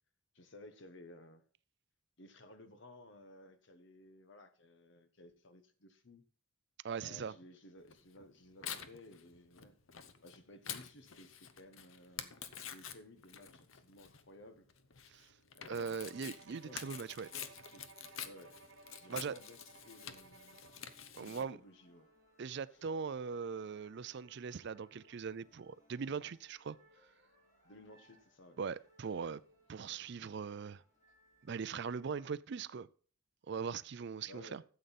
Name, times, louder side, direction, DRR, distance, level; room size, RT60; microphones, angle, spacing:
voice 1, 0.3-1.4 2.2-6.2 7.0-9.8 10.2-12.3 12.7-14.7 15.5-17.0 17.3-17.8 18.2-18.5 19.0-20.6 21.2-22.1 22.7-22.8 27.6-28.6 34.3-34.6, left 1 dB, 65° left, 1.2 m, -57 dB
voice 2, 6.8-7.3 15.1-15.3 15.7-17.3 19.1-19.4 21.1-21.6 22.4-26.8 28.6-29.4 29.7-30.8 31.4-32.9 33.5-34.6, right 6 dB, 60° right, 0.4 m, -40 dB
Tearing, 7.9-21.4, left 8 dB, 80° left, 0.9 m, -48 dB
Bowed string instrument, 15.8-21.2, right 4 dB, 80° right, 0.9 m, -59 dB
sound 1, 18.1-32.3, left 1 dB, 35° left, 3.1 m, -69 dB
13.0 x 7.9 x 4.1 m
head